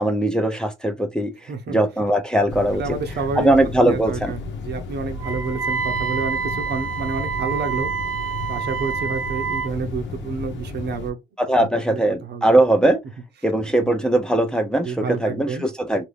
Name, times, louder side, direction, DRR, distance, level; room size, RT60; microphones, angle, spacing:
voice 1, 0.0-1.3 1.7-3.0 3.4-4.3 11.4-13.0 13.4-16.1, right 1 dB, 5° left, 0.6 m, -20 dB
voice 2, 1.5-1.8 2.7-7.9 8.2-11.2 11.6-12.5 13.8-13.9 14.8-15.6, right 4 dB, 60° right, 0.8 m, -29 dB
sound 1, 2.5-11.1, left 3 dB, 70° left, 0.9 m, -33 dB
Wind instrument woodwind instrument, 5.2-9.7, right 6 dB, 85° right, 0.9 m, -27 dB
2.6 x 2.6 x 3.3 m
cardioid pair, 90°, 20 cm